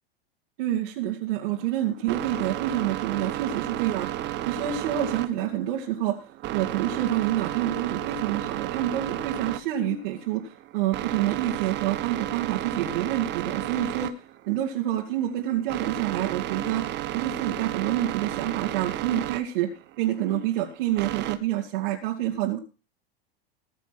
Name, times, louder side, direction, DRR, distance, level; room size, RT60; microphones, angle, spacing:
voice 1, 0.6-19.7 20.0-22.6, right 12 dB, 60° right, -1 dB, 2.6 m, -28 dB
sound 1, 1.5-21.4, right 13 dB, 35° right, 1.3 m, -33 dB
19.5 x 7.1 x 6.1 m, 0.33 s
hypercardioid pair, 95°, 30 cm